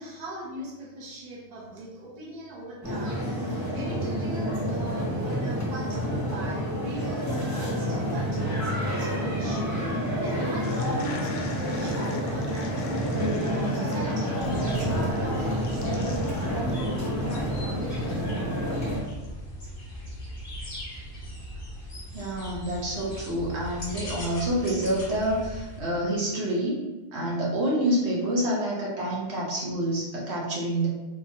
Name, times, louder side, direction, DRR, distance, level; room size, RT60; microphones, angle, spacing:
voice 1, 0.0-15.9, right 1 dB, 40° right, -5 dB, 0.9 m, -40 dB
sound 1, 2.8-19.0, equal, 15° left, 0.8 m, -28 dB
sound 2, 10.6-19.2, left 3 dB, 70° left, 0.8 m, -43 dB
sound 3, 14.3-25.8, equal, 35° left, 1.0 m, -39 dB
voice 2, 22.1-26.8 27.1-30.9, right 1 dB, 75° right, -4 dB, 1.1 m, -27 dB
3.7 x 2.9 x 2.8 m, 1.2 s
omnidirectional pair, 1.1 m